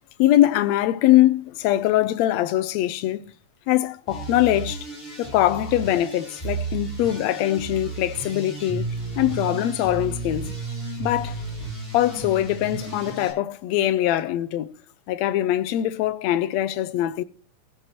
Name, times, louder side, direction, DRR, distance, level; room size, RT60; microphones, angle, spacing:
voice 1, 0.2-3.2 3.7-4.9 5.2-10.5 11.0-11.4 11.9-14.7 15.1-17.2, left 13 dB, 75° left, 1.9 m, -22 dB
sound 1, 4.1-13.3, right 3 dB, 10° left, 8.1 m, -33 dB
16.0 x 9.2 x 4.5 m
omnidirectional pair, 3.6 m